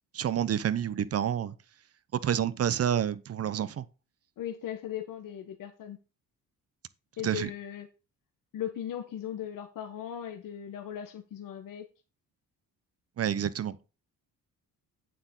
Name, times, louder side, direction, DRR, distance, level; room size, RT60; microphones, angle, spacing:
voice 1, 0.1-1.5 2.1-3.9 7.2-7.5 13.2-13.8, right 9 dB, 45° right, 0.8 m, -28 dB
voice 2, 4.4-6.0 7.2-7.9 8.5-11.9, left 10 dB, 65° left, 1.4 m, -38 dB
8.8 x 7.7 x 4.1 m
cardioid pair, 115°, 35 cm